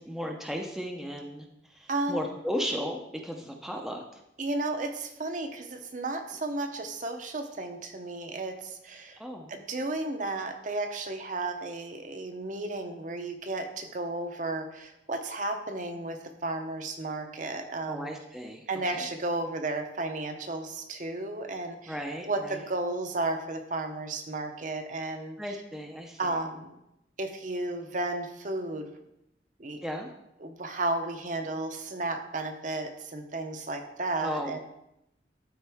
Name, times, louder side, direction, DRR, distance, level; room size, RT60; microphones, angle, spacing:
voice 1, 0.0-4.0 9.2-9.5 17.9-19.0 21.9-22.6 25.4-26.3 29.8-30.1 34.2-34.6, equal, ahead, 1 dB, 0.5 m, -35 dB
voice 2, 1.9-2.2 4.4-9.2 9.5-18.1 18.7-25.6 26.2-26.7 27.2-28.9 29.6-29.8 30.4-34.6, right 2 dB, 40° right, 6 dB, 0.7 m, -33 dB
12.5 x 4.3 x 3.5 m, 0.86 s
head